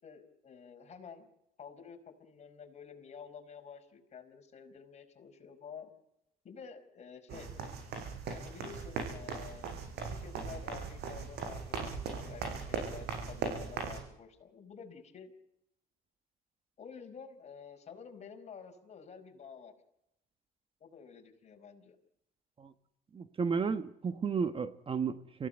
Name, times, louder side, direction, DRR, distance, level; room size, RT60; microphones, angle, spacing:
voice 1, 0.0-1.3 1.6-5.9 6.4-7.5 8.3-9.7 10.2-15.3 16.8-19.7 20.8-21.9, left 6 dB, 40° left, 5.2 m, -50 dB
sound 1, 7.3-14.0, right 5 dB, 75° right, 7.8 m, -39 dB
voice 2, 23.1-25.5, right 5 dB, 30° right, 1.3 m, -33 dB
27.5 x 17.0 x 8.9 m
cardioid pair, 110°, 17 cm